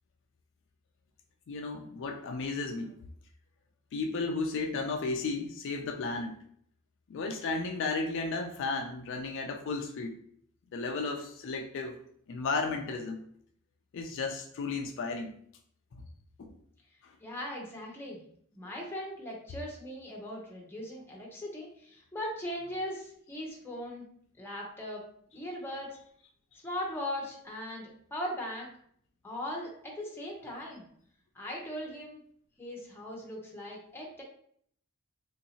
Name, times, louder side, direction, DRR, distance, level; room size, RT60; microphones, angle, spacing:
voice 1, 1.5-3.0 3.9-6.4 7.1-10.2 10.7-12.0 12.3-13.2 13.9-15.3 16.4-16.6 17.0-17.2, left 3 dB, 60° left, 4 dB, 0.3 m, -34 dB
voice 2, 17.2-18.2 18.5-24.0 24.4-25.0 25.3-26.0 26.6-28.7 29.2-30.8 31.3-32.2 32.6-34.2, left 1 dB, 10° left, -1 dB, 0.7 m, -39 dB
3.1 x 2.7 x 2.8 m, 0.64 s
head